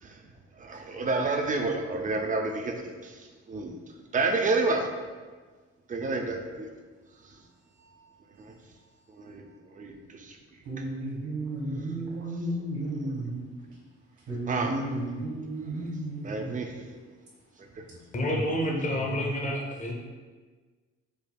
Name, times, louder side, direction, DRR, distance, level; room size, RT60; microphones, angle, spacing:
voice 1, 0.6-3.8 4.1-4.9 5.9-6.7 8.4-8.5 9.1-9.5 9.7-10.4 14.5-14.8 15.7-15.8 16.2-16.8 17.1-17.2 17.7-17.8, right 3 dB, 25° right, 3 dB, 0.4 m, -30 dB
voice 2, 10.6-13.4 14.3-16.6 17.9-18.0 18.3-18.4 18.7-18.9 19.3-19.5, right 1 dB, 70° right, -4 dB, 1.3 m, -33 dB
voice 3, 18.1-19.9, left 1 dB, 25° left, 0 dB, 0.7 m, -29 dB
5.0 x 2.3 x 2.2 m, 1.4 s
cardioid pair, 90°, 30 cm